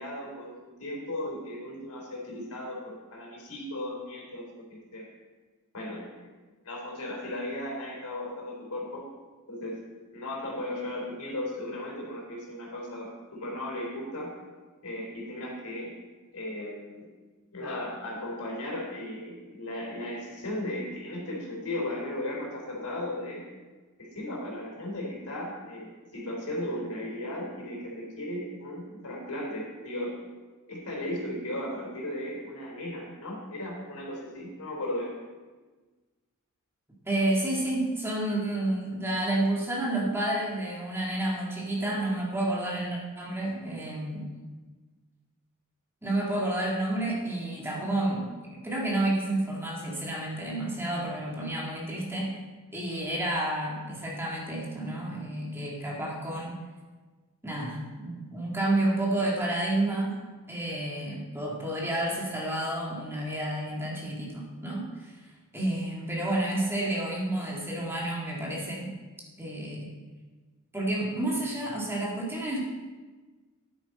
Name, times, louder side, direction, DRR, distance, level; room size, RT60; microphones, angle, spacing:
voice 1, 0.0-5.1 5.7-6.3 6.6-9.0 9.5-9.8 10.1-14.3 14.8-15.9 16.3-17.1 17.5-23.4 24.0-30.2 30.7-35.1, left 1 dB, 85° left, -3 dB, 3.2 m, -36 dB
voice 2, 37.1-44.3 46.0-52.4 52.7-56.6 57.4-60.2 60.5-65.1 65.5-68.9 69.4-69.9 70.7-72.6, right 1 dB, 10° right, -3 dB, 1.9 m, -30 dB
9.8 x 8.4 x 4.2 m, 1.3 s
head